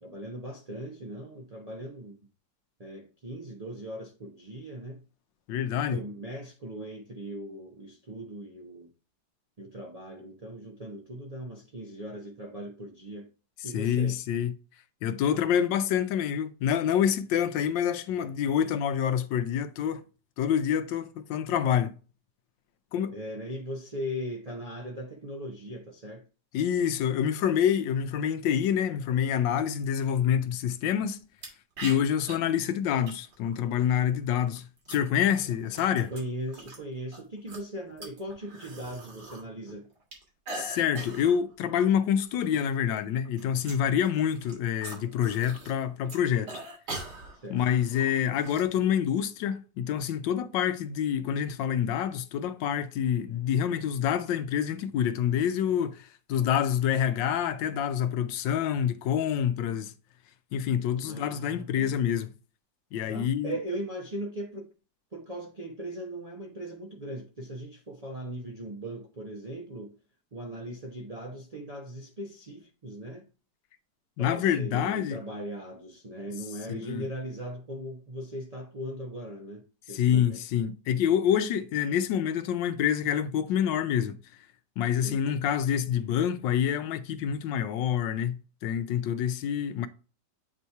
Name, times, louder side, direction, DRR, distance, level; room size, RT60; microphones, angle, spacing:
voice 1, 0.0-2.2 2.8-5.0 5.5-8.9 9.6-13.3 13.6-14.2 23.1-26.2 36.1-39.9 47.3-47.7 61.0-61.9 63.1-64.7 65.1-70.0 70.3-73.3 74.2-80.4 85.0-85.3, right 1 dB, 85° right, 0.3 m, -39 dB
voice 2, 5.5-6.0 13.7-14.5 15.0-20.0 20.4-21.9 22.9-23.1 26.5-31.2 31.8-36.1 40.5-46.5 47.5-59.9 60.5-62.3 62.9-63.6 74.2-75.2 76.7-77.0 79.9-84.2 84.8-89.9, left 9 dB, 80° left, 1.3 m, -27 dB
sound 1, 31.4-31.5 31.8-32.3 33.1-33.6 34.4-36.8 37.1-39.4 39.7-41.4 41.8-41.9 42.2-42.7 43.0-45.8 46.0-48.6, right 2 dB, 65° right, 2.4 m, -42 dB
8.1 x 2.8 x 4.5 m
omnidirectional pair, 2.0 m